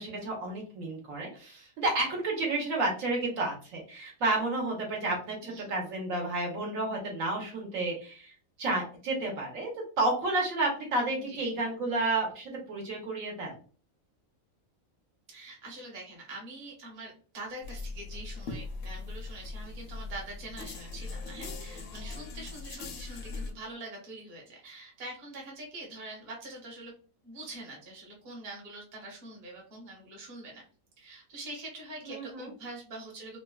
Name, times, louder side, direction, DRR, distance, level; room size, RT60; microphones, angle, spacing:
voice 1, 0.0-9.7 10.0-13.5 32.0-32.5, right 2 dB, 75° right, -1 dB, 1.2 m, -31 dB
voice 2, 15.3-26.9 27.2-30.6 31.0-33.4, right 2 dB, 40° right, -2 dB, 0.9 m, -44 dB
sound 1, 17.6-23.5, left 3 dB, 70° left, 0.9 m, -40 dB
3.1 x 2.1 x 2.2 m, 0.39 s
omnidirectional pair, 1.4 m